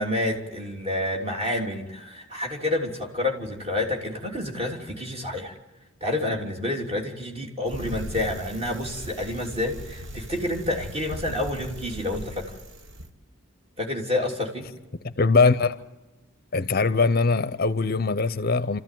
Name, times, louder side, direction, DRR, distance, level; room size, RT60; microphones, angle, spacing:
voice 1, 0.0-5.5 6.0-12.5 13.8-14.6, left 1 dB, 30° right, 3.2 m, -29 dB
Bicycle, 7.7-13.1, equal, 60° right, 1.5 m, -38 dB
voice 2, 15.0-15.8 16.5-18.8, left 4 dB, 45° left, 0.7 m, -21 dB
28.0 x 14.0 x 9.2 m
head